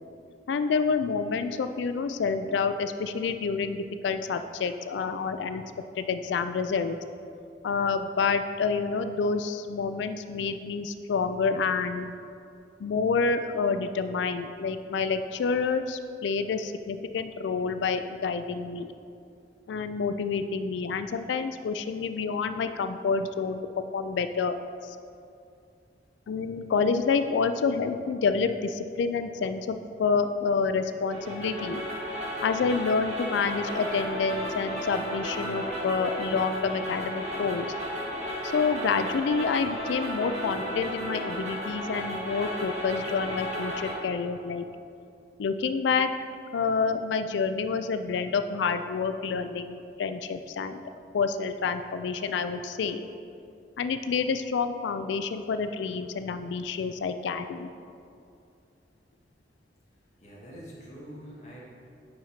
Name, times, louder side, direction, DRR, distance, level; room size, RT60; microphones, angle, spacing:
voice 1, 0.5-5.6 6.0-7.0 7.6-12.1 12.8-18.9 19.7-23.6 23.9-24.6 24.8-25.0 26.3-31.8 32.4-37.7 38.5-44.6 45.4-46.1 46.5-50.8 51.1-53.1 53.8-57.7, left 5 dB, 85° left, 10 dB, 0.3 m, -28 dB
sound 1, 31.1-43.9, equal, 40° right, 1.5 m, -34 dB
voice 2, 60.2-61.6, equal, 40° left, -5 dB, 1.7 m, -44 dB
5.6 x 5.2 x 5.7 m, 2.5 s
head